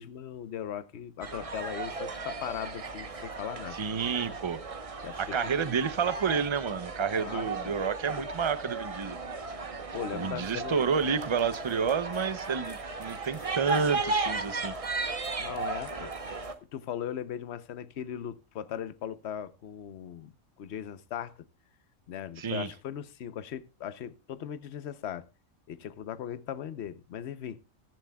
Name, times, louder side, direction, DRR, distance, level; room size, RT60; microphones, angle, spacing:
voice 1, 0.0-3.8 5.0-5.8 7.1-7.8 9.9-10.8 15.4-16.1 16.7-20.3 20.6-21.3 22.1-25.3 25.7-27.6, left 9 dB, 55° left, 1.0 m, -38 dB
sound 1, 1.2-16.5, right 3 dB, 30° right, 0.9 m, -36 dB
voice 2, 3.7-4.6 5.2-9.2 10.1-14.7 22.4-22.7, right 6 dB, 45° right, 0.3 m, -30 dB
sound 2, 10.8-16.6, left 3 dB, 35° left, 1.8 m, -57 dB
21.5 x 7.5 x 2.3 m
omnidirectional pair, 1.4 m